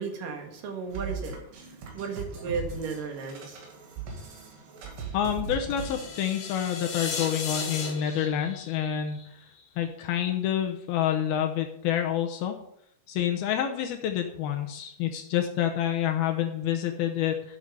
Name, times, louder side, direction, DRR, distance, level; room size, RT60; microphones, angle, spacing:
voice 1, 0.0-3.6, right 5 dB, 60° right, 3 dB, 3.3 m, -35 dB
sound 1, 0.9-6.1, right 5 dB, 85° right, 4.6 m, -39 dB
voice 2, 5.1-9.2 9.8-12.6 13.1-17.6, left 10 dB, 75° left, 4 dB, 2.7 m, -28 dB
sound 2, 5.8-9.8, left 5 dB, 60° left, 3.4 m, -36 dB
12.5 x 8.0 x 5.6 m, 0.72 s
omnidirectional pair, 4.7 m